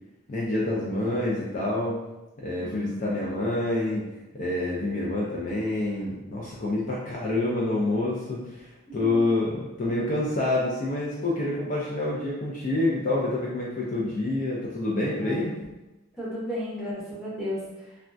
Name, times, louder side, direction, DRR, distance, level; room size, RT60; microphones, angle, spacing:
voice 1, 0.3-2.0 2.4-4.0 4.3-15.5, left 2 dB, 35° left, -5 dB, 0.4 m, -27 dB
voice 2, 2.6-3.3 9.0-9.2 15.2-15.6 16.2-18.0, left 1 dB, ahead, -9 dB, 0.8 m, -34 dB
3.4 x 2.2 x 2.5 m, 1.0 s
head